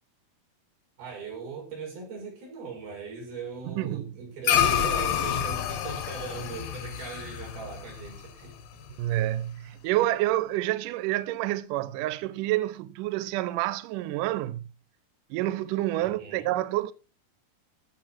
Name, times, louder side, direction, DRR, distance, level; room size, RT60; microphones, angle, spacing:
voice 1, 1.0-8.6 16.0-16.5, right 5 dB, 60° right, 7.9 m, -40 dB
voice 2, 3.7-4.1 9.0-14.7 15.3-16.9, right 15 dB, 85° right, 1.9 m, -28 dB
sound 1, 4.4-9.1, left 9 dB, 80° left, 1.5 m, -28 dB
15.5 x 6.2 x 6.0 m
omnidirectional pair, 4.8 m